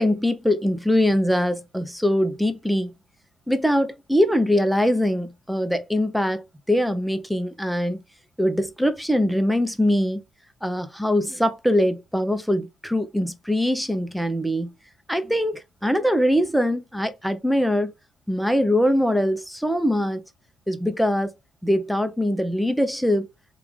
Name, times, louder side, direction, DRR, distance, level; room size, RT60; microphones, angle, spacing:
voice 1, 0.0-2.9 3.5-8.0 8.4-10.2 10.6-14.7 15.1-17.9 18.3-20.2 20.7-21.3 21.6-23.3, equal, ahead, 0.7 m, -22 dB
3.1 x 2.4 x 3.4 m
supercardioid pair, 60°, 0 cm